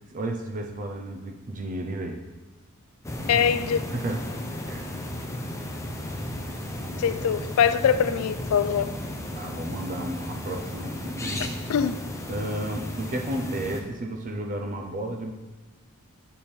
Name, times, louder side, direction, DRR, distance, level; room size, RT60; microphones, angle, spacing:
voice 1, 0.1-2.2 3.3-3.5 3.9-4.2 4.7-4.9 7.0-7.1 9.3-11.6 12.3-15.3, right 1 dB, 40° right, 0.5 m, -33 dB
sound 1, 3.0-13.8, left 1 dB, 15° left, 0.5 m, -34 dB
voice 2, 3.3-3.9 7.0-8.9 11.7-11.9, left 7 dB, 80° left, 0.3 m, -23 dB
7.2 x 3.3 x 4.3 m
head